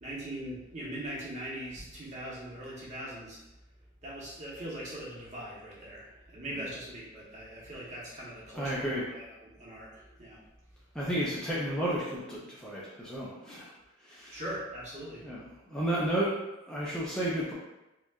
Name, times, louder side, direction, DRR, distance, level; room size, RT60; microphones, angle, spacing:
voice 1, 0.0-3.4 4.0-10.5 14.3-15.3, right 1 dB, 35° right, -6 dB, 1.0 m, -41 dB
voice 2, 8.5-9.0 10.9-13.7 14.0-14.4 15.2-15.4 15.7-16.3 16.7-17.5, right 1 dB, 5° left, -7 dB, 0.5 m, -32 dB
4.4 x 2.3 x 2.4 m, 0.97 s
head